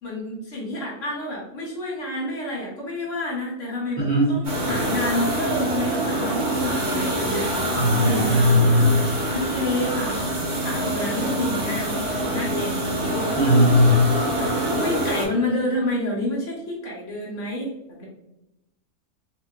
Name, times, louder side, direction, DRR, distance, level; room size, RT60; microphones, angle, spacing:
voice 1, 0.0-7.4 8.0-8.4 9.3-13.6 14.4-18.0, left 1 dB, 65° left, -3 dB, 1.2 m, -29 dB
voice 2, 4.0-4.4 7.8-9.0 13.4-14.1, left 1 dB, 35° right, -7 dB, 1.0 m, -18 dB
sound 1, 4.4-15.3, right 1 dB, 60° right, 1.3 m, -25 dB
3.8 x 2.7 x 2.3 m, 0.88 s
omnidirectional pair, 1.5 m